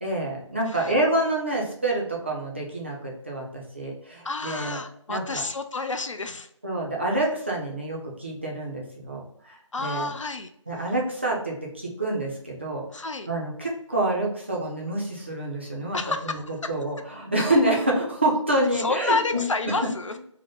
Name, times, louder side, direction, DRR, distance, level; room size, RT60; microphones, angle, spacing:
voice 1, 0.0-4.8 5.1-5.4 6.6-10.1 10.7-16.0 16.2-16.4 16.7-19.5, right 1 dB, 20° right, -3 dB, 0.4 m, -27 dB
voice 2, 4.2-6.5 9.7-10.5 12.9-13.3 15.9-16.7 18.7-20.2, left 3 dB, 75° left, 8 dB, 0.4 m, -29 dB
2.7 x 2.1 x 3.3 m, 0.72 s
figure-of-eight pair, 160°, 16 cm